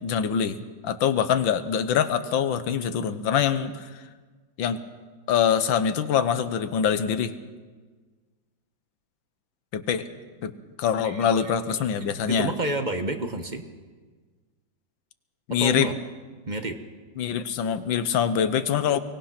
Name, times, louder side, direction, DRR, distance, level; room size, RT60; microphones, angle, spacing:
voice 1, 0.0-4.0 4.6-4.8 5.3-7.3 9.7-10.1 10.4-10.5 10.8-12.5 15.5-15.9 17.2-19.0, left 8 dB, 85° left, 11 dB, 1.7 m, -24 dB
voice 2, 12.3-13.6 15.6-15.9 16.5-16.8, right 2 dB, 30° right, 7 dB, 1.1 m, -29 dB
23.5 x 19.0 x 5.9 m, 1.4 s
omnidirectional pair, 2.0 m